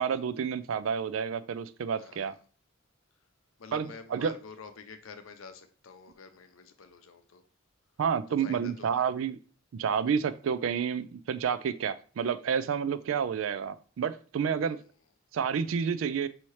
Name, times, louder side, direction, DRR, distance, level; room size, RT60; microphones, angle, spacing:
voice 1, 0.0-2.3 3.7-4.4 8.0-9.4 9.7-14.8 15.3-16.3, right 7 dB, 75° right, 14 dB, 0.4 m, -30 dB
voice 2, 2.0-2.4 3.6-7.4 8.4-9.1, left 5 dB, 80° left, 8 dB, 0.6 m, -48 dB
5.6 x 2.8 x 3.1 m, 0.40 s
head